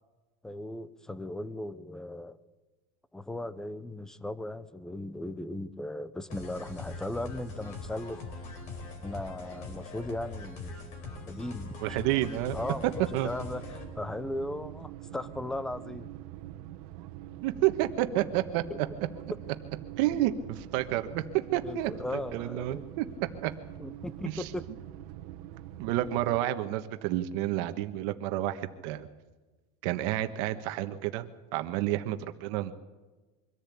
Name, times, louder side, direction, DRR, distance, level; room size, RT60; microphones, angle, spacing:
voice 1, 0.4-2.4 3.1-8.2 9.0-13.6 13.9-16.1 18.7-18.8 21.6-22.8 23.8-24.6, left 1 dB, 5° left, 15 dB, 0.6 m, -37 dB
sound 1, 6.3-13.8, left 3 dB, 40° left, 4.4 m, -42 dB
voice 2, 11.8-12.6 13.1-13.3 17.4-18.6 20.0-21.2 21.5-21.9 22.3-23.0 23.4-23.5 24.3-24.5 25.8-29.1 29.8-32.7, right 14 dB, 55° right, 8 dB, 1.3 m, -30 dB
sound 2, 11.8-26.4, right 13 dB, 80° right, 1.3 m, -45 dB
24.0 x 14.5 x 8.5 m, 1.2 s
cardioid pair, 175°, 19 cm